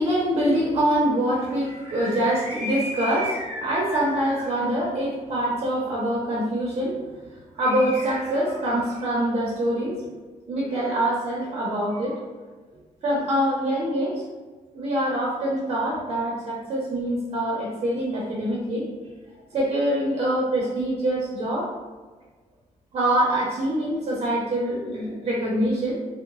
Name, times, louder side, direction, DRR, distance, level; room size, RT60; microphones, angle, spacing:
voice 1, 0.0-7.0 7.6-10.0 10.5-12.2 13.0-14.2 14.7-18.8 19.5-21.7 22.9-26.0, right 1 dB, 45° right, -4 dB, 0.7 m, -24 dB
3.6 x 2.2 x 2.9 m, 1.3 s
cardioid pair, 155°, 14 cm